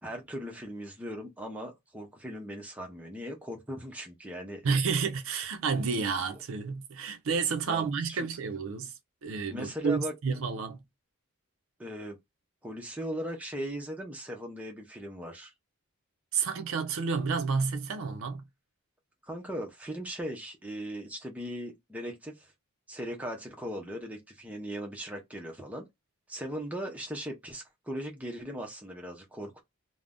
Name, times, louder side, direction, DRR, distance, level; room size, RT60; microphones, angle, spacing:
voice 1, 0.0-4.6 5.7-5.8 7.7-8.3 9.5-10.1 11.8-12.2 12.6-15.5 19.3-22.5 22.9-25.9 26.3-29.6, equal, 5° right, 0.5 m, -38 dB
voice 2, 4.6-10.8 16.3-18.5, right 5 dB, 65° right, 0.4 m, -30 dB
2.5 x 2.0 x 3.5 m
head